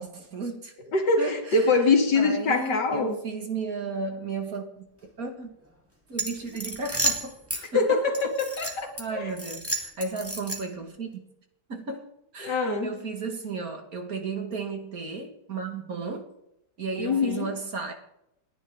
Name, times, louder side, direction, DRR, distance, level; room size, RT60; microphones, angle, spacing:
voice 1, 0.0-0.7 1.2-1.8 2.1-4.8 5.2-5.5 6.1-8.3 9.0-11.1 11.7-16.3 16.8-17.9, right 4 dB, 55° right, 4 dB, 2.5 m, -34 dB
voice 2, 0.9-3.2 7.7-9.3 12.4-13.0 17.0-17.5, left 3 dB, 75° left, 3 dB, 2.8 m, -24 dB
sound 1, 6.1-7.6 8.1-9.0 9.4-10.8, right 2 dB, 10° right, 2.1 m, -31 dB
29.5 x 10.5 x 3.9 m, 0.80 s
omnidirectional pair, 1.9 m